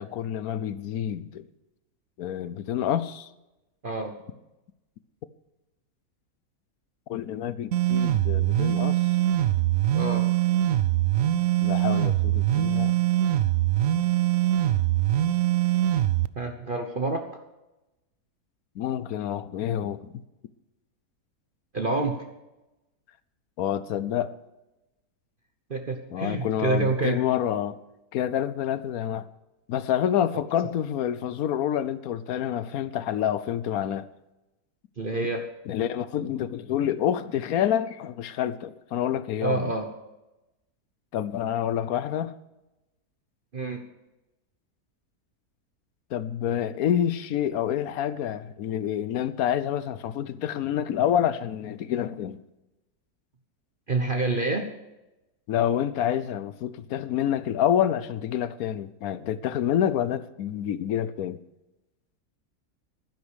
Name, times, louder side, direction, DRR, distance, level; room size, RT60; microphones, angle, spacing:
voice 1, 0.0-1.5 2.2-3.3 7.1-9.0 11.6-12.9 18.8-20.2 23.6-24.4 26.1-27.8 28.1-29.3 29.7-34.1 35.7-39.7 41.1-42.3 46.1-52.4 55.5-61.4, left 10 dB, 70° left, 1.1 m, -28 dB
sound 1, 7.7-16.3, right 13 dB, 70° right, 0.8 m, -23 dB
voice 2, 9.9-10.3 16.4-17.2 21.7-22.2 25.7-27.2 35.0-35.5 39.4-39.9 43.5-43.8 53.9-54.7, right 3 dB, 35° right, 1.1 m, -27 dB
12.0 x 10.5 x 6.4 m
omnidirectional pair, 1.7 m